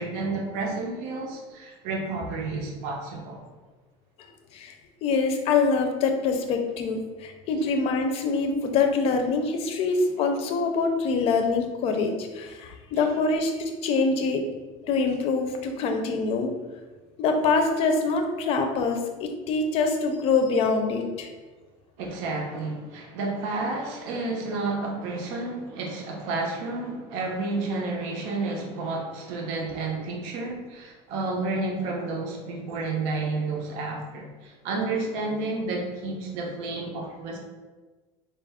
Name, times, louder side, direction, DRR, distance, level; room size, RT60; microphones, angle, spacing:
voice 1, 0.0-3.5 13.0-13.1 22.0-37.4, right 3 dB, 80° right, 0 dB, 0.7 m, -31 dB
voice 2, 5.0-14.4 14.8-16.5 17.2-21.3, left 4 dB, 40° left, 5 dB, 0.5 m, -25 dB
4.3 x 2.4 x 3.4 m, 1.3 s
cardioid pair, 170°, 15 cm